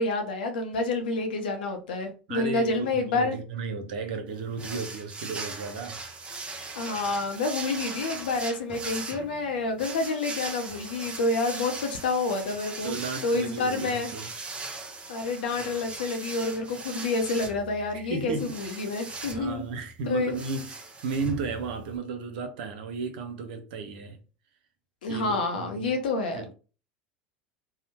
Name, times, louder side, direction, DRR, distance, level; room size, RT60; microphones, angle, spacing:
voice 1, 0.0-3.4 6.3-6.4 6.7-12.9 13.2-14.1 15.1-19.6 20.1-20.3 25.0-26.5, left 3 dB, 80° left, 0.6 m, -28 dB
voice 2, 2.3-6.4 12.8-14.3 15.2-15.3 17.9-18.8 19.3-20.8 21.0-24.2 25.1-26.0 26.3-26.5, right 4 dB, 70° right, 0.5 m, -34 dB
sound 1, 4.6-22.0, right 3 dB, 20° right, 0.7 m, -39 dB
2.8 x 2.0 x 2.8 m
hypercardioid pair, 80°, 5 cm